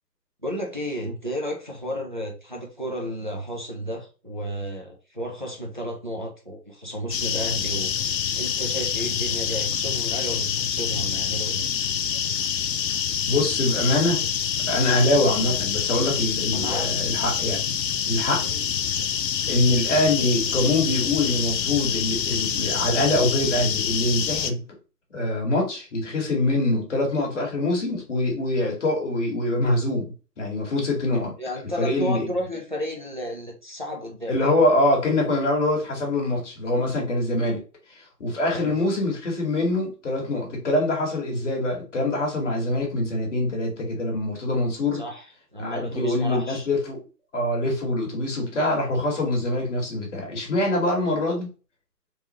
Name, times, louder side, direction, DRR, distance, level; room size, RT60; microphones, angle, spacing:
voice 1, 0.4-7.9 8.3-11.6 16.5-17.0 18.4-18.6 31.4-34.4 38.5-38.7 44.9-45.2 45.5-46.7, equal, 30° right, 0 dB, 0.5 m, -32 dB
sound 1, 7.1-24.5, left 8 dB, 85° left, 0.6 m, -26 dB
voice 2, 13.2-14.2 14.7-17.7 18.1-18.4 19.5-24.6 25.1-31.3 31.8-32.3 34.3-37.6 37.9-45.0 45.6-47.0 47.3-51.5, left 1 dB, 45° left, 0 dB, 1.5 m, -24 dB
3.6 x 3.0 x 2.9 m, 0.35 s
hypercardioid pair, 165°, 49 cm